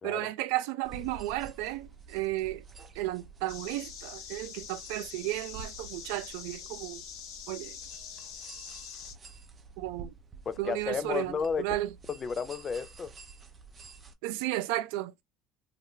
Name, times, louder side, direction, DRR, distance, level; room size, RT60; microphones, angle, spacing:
voice 1, 0.0-2.6 2.9-7.0 7.5-7.8 9.8-10.1 10.6-11.9 14.2-15.1, right 16 dB, 75° right, 0.3 m, -33 dB
sound 1, 0.8-14.1, right 4 dB, 35° right, 0.6 m, -50 dB
sound 2, 3.5-9.1, left 7 dB, 75° left, 0.9 m, -44 dB
voice 2, 10.5-11.6 12.1-13.1, left 6 dB, 35° left, 0.5 m, -32 dB
2.6 x 2.1 x 3.5 m
supercardioid pair, 85°, 0 cm